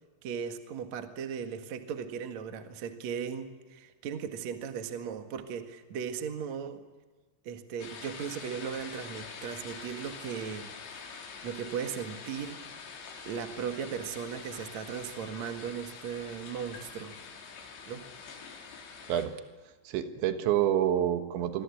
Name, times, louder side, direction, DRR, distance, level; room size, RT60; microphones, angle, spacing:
voice 1, 0.2-6.8 7.4-12.6 13.3-17.2 17.9-18.0, right 7 dB, 55° right, 7 dB, 2.0 m, -37 dB
sound 1, 7.8-19.3, left 5 dB, 80° left, 6.0 m, -45 dB
voice 2, 19.9-21.6, right 11 dB, 70° right, 8 dB, 3.6 m, -27 dB
27.5 x 23.0 x 8.5 m, 1.3 s
omnidirectional pair, 5.7 m